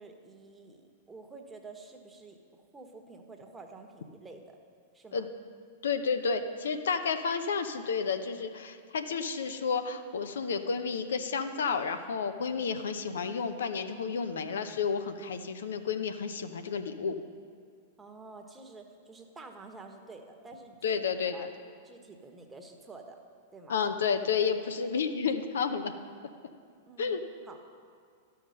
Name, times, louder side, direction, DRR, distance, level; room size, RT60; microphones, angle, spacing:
voice 1, 0.0-4.6 4.9-5.3 18.0-21.0 21.3-21.5 21.8-23.2 23.5-23.8 26.9-27.2 27.4-27.6, right 3 dB, 15° right, 3 dB, 1.3 m, -49 dB
voice 2, 5.8-17.2 20.8-21.5 23.7-25.9 27.0-27.2, left 5 dB, 75° left, 8 dB, 0.7 m, -31 dB
12.5 x 5.8 x 6.5 m, 2.1 s
hypercardioid pair, 105°, 0 cm